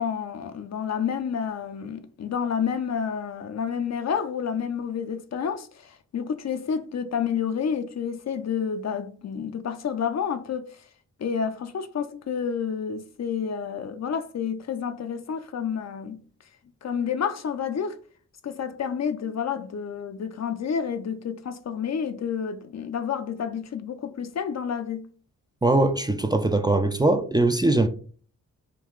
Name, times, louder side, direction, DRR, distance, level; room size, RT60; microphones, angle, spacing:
voice 1, 0.0-10.8 11.2-16.2 16.8-18.0 18.4-25.1, left 7 dB, 50° left, 0.5 m, -29 dB
voice 2, 25.6-27.9, right 2 dB, 10° right, 0.4 m, -21 dB
3.8 x 2.3 x 4.4 m
cardioid pair, 50°, 34 cm